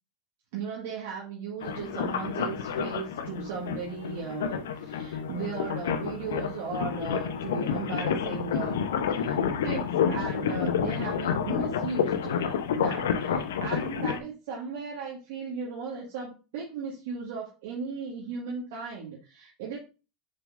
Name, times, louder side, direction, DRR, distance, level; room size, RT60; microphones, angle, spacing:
voice 1, 0.5-8.8 9.1-9.4 9.6-19.8, right 5 dB, 65° right, -3 dB, 1.9 m, -36 dB
sound 1, 1.6-14.2, left 7 dB, 75° left, 0.8 m, -29 dB
6.9 x 6.7 x 2.6 m, 0.31 s
hypercardioid pair, 85°, 0 cm